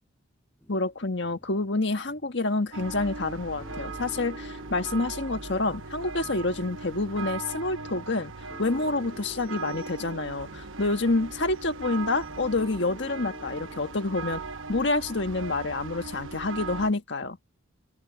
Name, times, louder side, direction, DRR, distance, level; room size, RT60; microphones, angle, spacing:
sound 1, 0.6-1.7 2.1-2.4 2.8-3.3 3.6-14.5, equal, 10° left, 6.7 m, -51 dB
voice 1, 0.7-8.3 8.6-14.4 14.7-17.4, left 2 dB, 60° left, 1.7 m, -28 dB
sound 2, 2.7-16.9, right 4 dB, 75° right, 1.0 m, -39 dB
open air
head